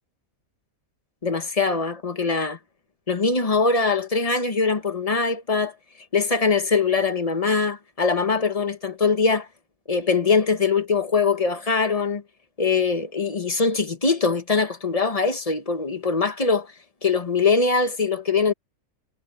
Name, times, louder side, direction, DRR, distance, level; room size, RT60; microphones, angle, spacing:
voice 1, 1.2-2.6 3.1-5.7 6.1-9.5 9.9-12.2 12.6-16.7 17.0-18.5, left 4 dB, 25° left, 1.3 m, -22 dB
omnidirectional pair, 1.5 m